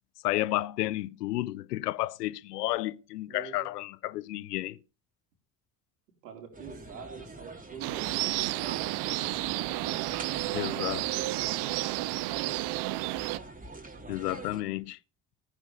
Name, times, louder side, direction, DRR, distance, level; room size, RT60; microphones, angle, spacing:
voice 1, 0.2-4.8 10.5-11.0 14.1-15.0, left 16 dB, 80° left, 0.7 m, -31 dB
voice 2, 3.3-3.7 6.2-9.5 9.9-11.9, right 7 dB, 85° right, 4.2 m, -46 dB
sound 1, 6.5-14.6, right 2 dB, 15° right, 3.2 m, -45 dB
sound 2, 7.8-13.4, right 20 dB, 55° right, 0.7 m, -31 dB
15.0 x 9.5 x 5.3 m
hypercardioid pair, 55°, 47 cm